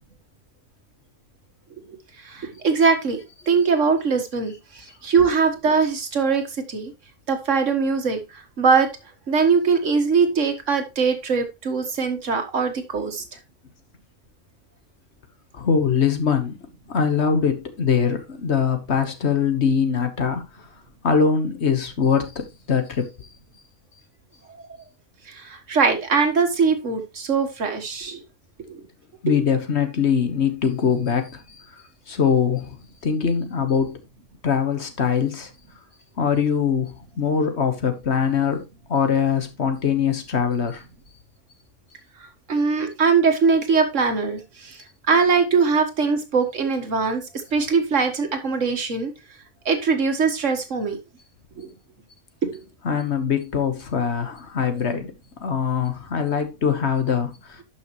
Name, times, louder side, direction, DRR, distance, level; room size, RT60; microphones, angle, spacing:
voice 1, 1.9-3.2 3.5-6.9 7.3-8.9 9.3-13.2 25.3-28.2 28.7-28.8 42.5-47.2 47.5-49.1 49.7-51.0 51.6-51.7 52.4-52.6, right 5 dB, 75° right, 1.9 m, -21 dB
voice 2, 15.5-16.6 16.9-20.4 21.0-23.3 29.2-31.4 32.1-32.8 33.0-34.0 34.4-35.5 36.2-38.6 38.9-40.8 52.8-55.1 55.4-57.6, left 6 dB, 60° left, 1.5 m, -22 dB
11.5 x 5.9 x 3.1 m
omnidirectional pair, 1.3 m